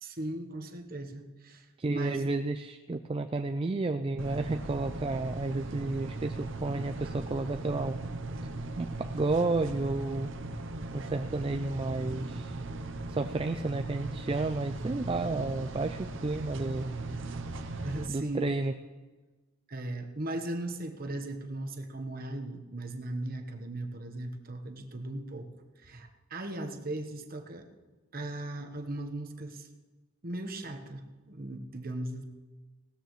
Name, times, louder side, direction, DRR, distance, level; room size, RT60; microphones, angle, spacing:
voice 1, 0.0-2.3 17.8-18.5 19.7-25.5 25.8-27.7 28.1-29.7 30.2-32.2, right 1 dB, 40° right, 6 dB, 1.1 m, -37 dB
voice 2, 1.8-8.0 8.8-10.3 10.9-12.6 13.1-16.9 18.1-18.7, right 3 dB, 25° right, 7 dB, 0.3 m, -31 dB
sound 1, 4.2-18.1, right 2 dB, 60° right, 0.8 m, -38 dB
17.5 x 13.5 x 3.2 m, 1.3 s
head